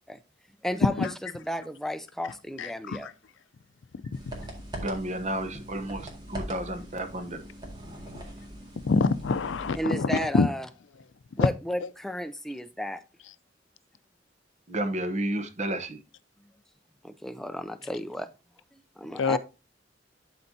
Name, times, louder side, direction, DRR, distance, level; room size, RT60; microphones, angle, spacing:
voice 1, 0.6-1.1 1.3-3.1 9.8-10.7 11.4-13.0 17.0-18.3 19.0-19.4, equal, ahead, 0.4 m, -33 dB
voice 2, 2.6-3.1 8.8-10.5 11.4-11.5 11.8-11.9 19.2-19.4, left 4 dB, 90° left, 0.5 m, -25 dB
sound 1, 4.1-9.8, right 1 dB, 25° right, 1.9 m, -41 dB
voice 3, 4.7-7.4 14.7-16.0, right 1 dB, 40° right, 0.9 m, -32 dB
12.0 x 4.3 x 2.7 m
head